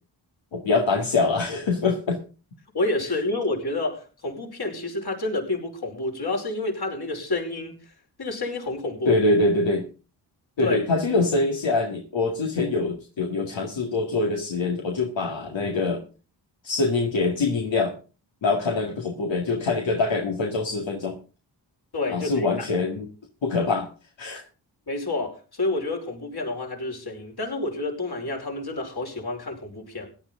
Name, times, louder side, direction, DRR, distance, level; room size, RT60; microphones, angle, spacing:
voice 1, 0.5-2.2 9.1-9.9 10.6-16.0 16.6-17.9 18.4-21.2 22.1-23.1 23.4-23.9 24.2-24.4, left 3 dB, 80° left, 2.2 m, -24 dB
voice 2, 2.7-7.7 8.2-9.1 10.6-10.8 21.9-22.7 24.9-30.1, left 2 dB, 55° left, 5.2 m, -29 dB
17.0 x 11.0 x 3.8 m
cardioid pair, 45°, 45 cm